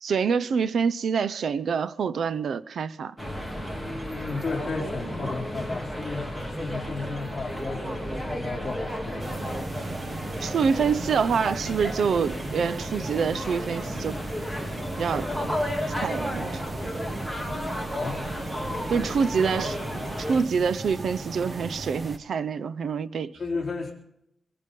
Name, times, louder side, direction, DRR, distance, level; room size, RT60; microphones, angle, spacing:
voice 1, 0.0-3.1 10.4-14.2 15.0-15.3 16.0-16.6 18.9-19.8 20.3-23.4, right 6 dB, 60° right, 0.6 m, -26 dB
sound 1, 3.2-20.4, equal, 10° right, 2.6 m, -33 dB
voice 2, 4.1-8.0 8.3-9.6 17.9-18.2 23.3-23.9, left 4 dB, 25° left, 4.0 m, -34 dB
sound 2, 9.2-22.2, right 2 dB, 30° right, 1.0 m, -37 dB
23.0 x 11.0 x 5.4 m
wide cardioid pair, 170°, 0 cm